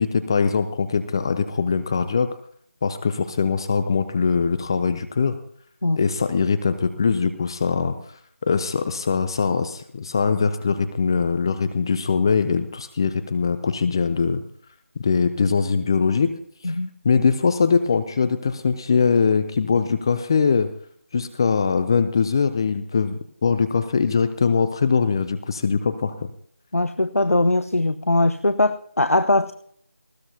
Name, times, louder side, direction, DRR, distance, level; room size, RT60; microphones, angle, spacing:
voice 1, 0.0-2.3 2.8-5.4 6.0-7.9 8.4-14.4 15.0-16.3 16.6-16.7 17.0-20.7 21.1-26.3, left 5 dB, 20° left, 0.5 m, -22 dB
voice 2, 26.7-29.5, left 2 dB, 85° left, 1.0 m, -20 dB
19.5 x 17.0 x 2.8 m
figure-of-eight pair, 165°, 8 cm